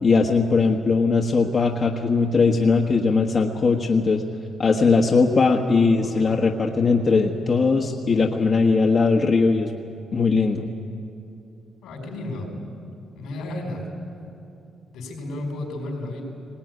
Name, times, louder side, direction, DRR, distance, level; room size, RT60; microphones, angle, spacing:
voice 1, 0.0-4.2 4.6-9.7 10.1-10.7, left 4 dB, 50° left, 1 dB, 1.4 m, -19 dB
voice 2, 5.9-6.4 11.8-12.5 13.1-13.8 14.9-16.2, left 2 dB, 85° left, 2 dB, 5.0 m, -33 dB
19.0 x 19.0 x 9.6 m, 2.7 s
cardioid pair, 70°, 0 cm